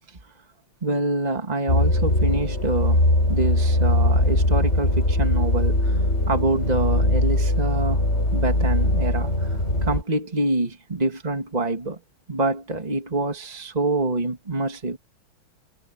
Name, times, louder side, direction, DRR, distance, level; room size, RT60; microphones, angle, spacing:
voice 1, 0.8-3.0 3.3-8.1 8.3-12.0 12.3-15.0, right 2 dB, 20° right, 2.5 m, -26 dB
sound 1, 1.7-10.0, left 1 dB, 30° left, 7.3 m, -21 dB
omnidirectional pair, 2.3 m